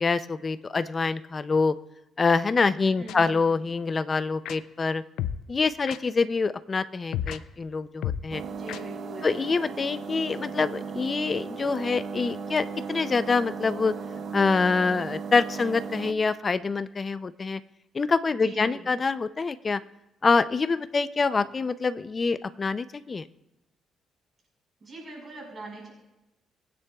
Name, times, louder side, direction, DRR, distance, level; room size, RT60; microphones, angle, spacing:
voice 1, 0.0-1.7 2.2-5.0 5.5-8.4 9.2-13.9 14.3-17.6 17.9-19.8 20.2-23.3, left 4 dB, 35° left, 14 dB, 0.5 m, -25 dB
voice 2, 2.9-3.8 8.5-9.6 18.3-19.0 21.3-21.5 24.8-25.9, right 2 dB, 40° right, -1 dB, 5.1 m, -43 dB
sound 1, 3.1-3.2 4.5-4.6 5.2-5.4 5.9-6.0 7.1-7.4 8.0-8.3 8.7-8.8, left 10 dB, 85° left, 0.4 m, -30 dB
sound 2, 8.3-16.1, right 5 dB, 55° right, 0.7 m, -36 dB
22.0 x 9.5 x 2.4 m, 0.96 s
cardioid pair, 90°, 0 cm